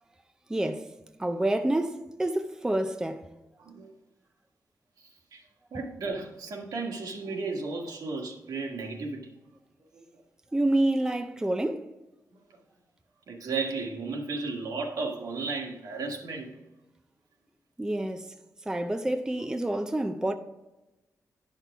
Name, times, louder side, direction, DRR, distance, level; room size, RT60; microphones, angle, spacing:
voice 1, 0.5-0.9 1.2-3.3 10.5-11.9 17.8-18.3 18.7-20.3, right 1 dB, 10° right, 0.5 m, -28 dB
voice 2, 3.6-3.9 5.3-5.4 5.7-9.3 9.9-10.1 13.3-16.6, right 3 dB, 80° right, 1.6 m, -34 dB
10.5 x 5.9 x 3.5 m
wide cardioid pair, 150°, 6 cm